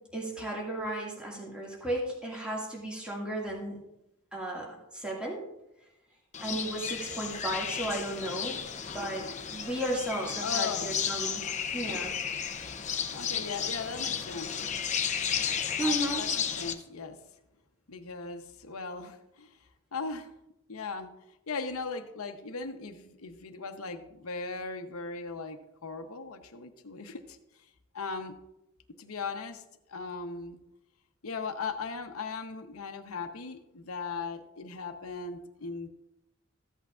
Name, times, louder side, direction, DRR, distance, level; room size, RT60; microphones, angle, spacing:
voice 1, 0.1-3.8 4.3-4.7 4.9-5.4 6.4-8.6 8.9-11.4 11.7-12.1 15.8-16.2, right 1 dB, 5° right, -4 dB, 2.1 m, -34 dB
sound 1, 6.3-16.7, left 7 dB, 35° left, 0.7 m, -33 dB
voice 2, 10.4-11.0 13.1-14.5 15.5-17.2 17.9-19.5 19.9-20.3 20.7-21.1 21.5-27.4 27.9-28.3 29.0-29.6 29.9-30.6 31.2-35.9, left 4 dB, 80° left, 8 dB, 0.9 m, -38 dB
14.5 x 8.3 x 2.5 m, 0.87 s
head